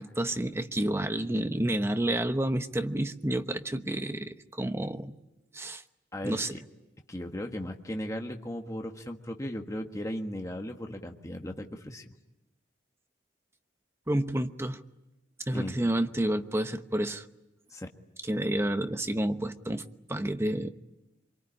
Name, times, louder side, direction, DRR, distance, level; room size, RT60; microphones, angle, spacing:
voice 1, 0.0-5.1 5.5-5.8 6.2-6.5 14.1-14.8 15.5-17.2 18.3-20.7, right 1 dB, 15° right, 8 dB, 1.0 m, -30 dB
voice 2, 6.1-6.6 7.1-12.1 15.5-15.7 17.7-17.9, left 1 dB, 15° left, 3 dB, 1.5 m, -36 dB
25.5 x 23.5 x 9.8 m, 0.98 s
head